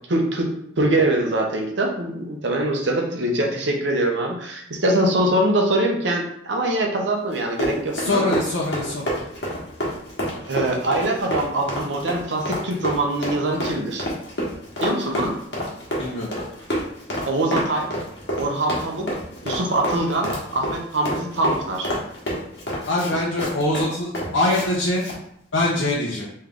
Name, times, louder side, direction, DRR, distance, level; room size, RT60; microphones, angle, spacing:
voice 1, 0.1-0.5 0.8-8.4 10.4-14.0 14.8-15.4 17.3-17.9 18.4-19.1 19.4-21.9, right 1 dB, 75° right, 2 dB, 0.8 m, -23 dB
Run, 7.3-24.7 25.0-25.2, equal, 65° left, 1.3 m, -28 dB
voice 2, 7.9-9.0 16.0-16.3 22.9-25.0 25.5-26.3, left 2 dB, 85° left, -4 dB, 0.8 m, -23 dB
3.4 x 3.2 x 3.7 m, 0.72 s
head